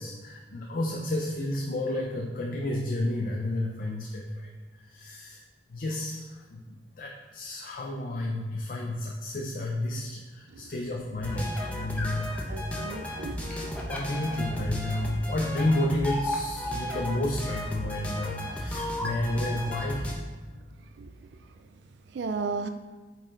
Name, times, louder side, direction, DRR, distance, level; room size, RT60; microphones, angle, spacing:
voice 1, 0.0-4.5 4.8-5.4 5.7-6.6 7.0-12.4 13.9-20.0, left 1 dB, 50° left, 0 dB, 0.6 m, -31 dB
sound 1, 11.2-20.1, left 1 dB, 10° left, 0.9 m, -34 dB
voice 2, 12.5-13.5 18.9-19.0 21.0-21.1 22.1-22.7, right 4 dB, 80° right, 8 dB, 0.4 m, -34 dB
8.3 x 4.1 x 3.9 m, 1.3 s
head